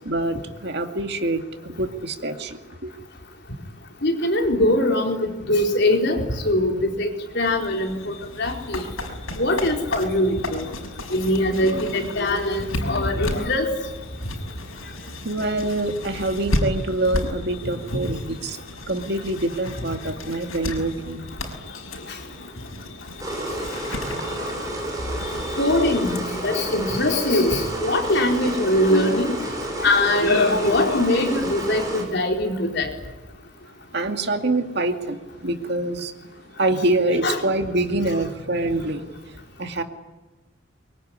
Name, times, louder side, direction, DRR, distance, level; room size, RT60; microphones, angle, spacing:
voice 1, 0.0-2.9 15.2-18.6 18.9-21.2 24.2-24.8 25.2-25.6 33.9-36.1 36.6-39.8, right 2 dB, 55° right, 6 dB, 2.3 m, -26 dB
voice 2, 4.0-8.8 9.3-10.7 11.1-13.7 25.3-29.5 29.8-32.9 37.2-37.4, left 1 dB, 55° left, 2 dB, 4.5 m, -22 dB
sound 1, 7.4-26.2, left 1 dB, 90° left, 6.1 m, -33 dB
sound 2, 23.2-32.0, right 1 dB, 15° right, 6.2 m, -30 dB
25.0 x 23.5 x 9.9 m, 1.2 s
head